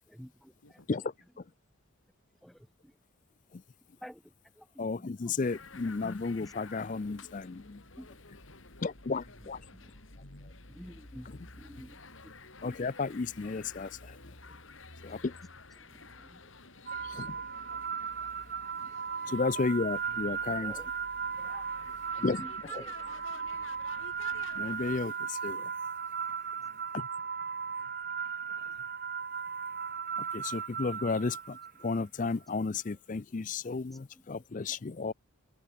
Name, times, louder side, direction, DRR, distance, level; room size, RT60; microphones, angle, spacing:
voice 1, 0.1-1.1 2.4-3.0 4.0-5.4 5.8-5.9 6.4-6.5 7.1-7.3 8.0-8.1 9.4-10.0 10.7-12.9 15.8-16.5 17.5-17.7 18.2-18.3 18.8-19.6 19.9-20.9 21.4-21.8 22.2-23.7 28.5-28.8 32.6-33.0 33.6-34.7, equal, ahead, 4.3 m, -54 dB
voice 2, 0.6-1.3 1.7-1.9 8.4-9.5 21.8-23.1 26.6-26.8 27.4-27.8, left 1 dB, 85° left, 8.0 m, -66 dB
voice 3, 4.8-7.8 8.8-9.6 12.6-13.9 15.0-15.2 17.0-17.4 19.3-20.7 22.2-22.4 24.5-25.7 30.3-31.6 31.8-35.1, left 4 dB, 35° left, 0.4 m, -33 dB
sound 1, 5.4-25.0, left 3 dB, 65° left, 4.7 m, -51 dB
sound 2, 16.9-32.0, right 6 dB, 45° right, 1.4 m, -37 dB
head